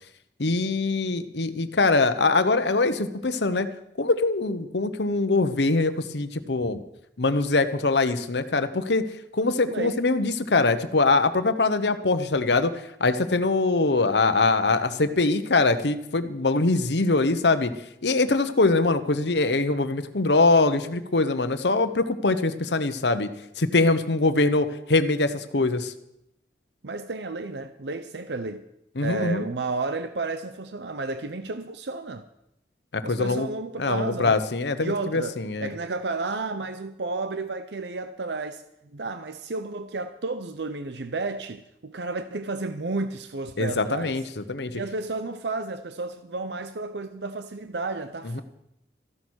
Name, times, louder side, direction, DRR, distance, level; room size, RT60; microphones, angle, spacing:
voice 1, 0.4-3.7 4.0-6.8 7.2-9.0 9.3-17.7 18.0-23.3 23.6-25.9 29.0-29.4 32.9-33.5 33.8-35.7 43.6-44.2 44.5-44.8 48.3-48.4, left 3 dB, 85° left, 1.0 m, -23 dB
voice 2, 9.6-10.0 26.8-28.6 29.0-32.2 33.0-34.4 34.8-44.2 44.6-48.4, right 3 dB, 80° right, 0.7 m, -32 dB
14.5 x 11.5 x 6.4 m
head